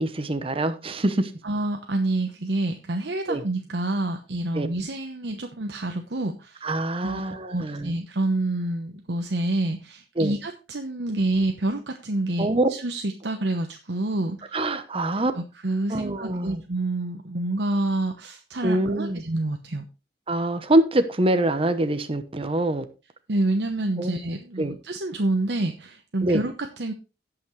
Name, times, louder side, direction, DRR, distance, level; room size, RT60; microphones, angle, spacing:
voice 1, 0.0-1.3 3.3-3.4 4.5-4.7 6.6-7.9 10.2-10.3 12.4-12.7 14.5-15.3 15.9-16.6 18.6-19.2 20.3-22.8 24.0-24.2 24.6-24.7 26.2-26.4, right 1 dB, 30° right, 0.9 m, -24 dB
voice 2, 1.4-6.7 7.0-14.6 15.3-19.8 23.3-26.9, right 2 dB, 65° right, 1.0 m, -28 dB
17.5 x 5.9 x 3.2 m
head